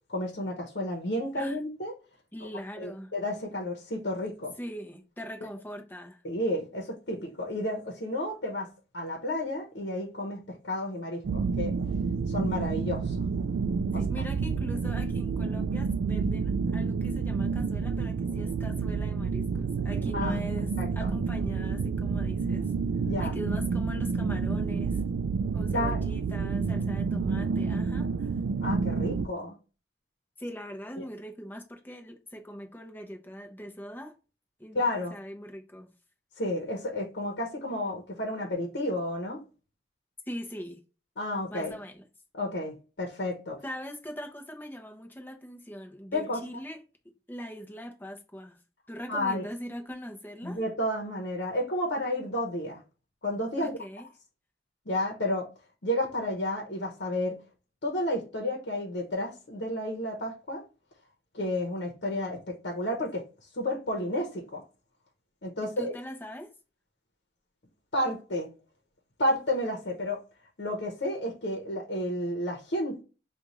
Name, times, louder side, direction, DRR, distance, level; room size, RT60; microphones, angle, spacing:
voice 1, 0.1-1.9 2.8-4.5 6.2-11.7 12.3-13.2 13.9-14.2 20.1-20.4 20.8-21.1 23.1-23.4 25.7-26.1 28.6-29.5 31.0-31.1 34.7-35.1 36.4-39.4 41.2-41.8 42.3-43.6 46.1-46.6 49.1-49.5 50.4-52.8 53.2-53.8 54.9-55.5 55.8-57.4 57.8-60.6 61.3-63.2 63.5-64.6 65.4-65.9 67.9-68.5 69.2-70.2 70.6-73.0, left 1 dB, 75° left, 0.9 m, -31 dB
voice 2, 2.3-3.1 4.6-6.2 13.9-22.7 23.2-25.0 25.5-28.3 30.4-34.1 34.6-34.8 35.1-35.9 40.3-40.8 41.5-42.0 43.6-46.8 47.3-48.6 48.9-50.6 53.6-54.1 65.8-66.5, equal, 10° left, 0.7 m, -41 dB
sound 1, 11.2-29.3, right 5 dB, 90° right, 0.3 m, -29 dB
5.1 x 2.4 x 2.9 m
head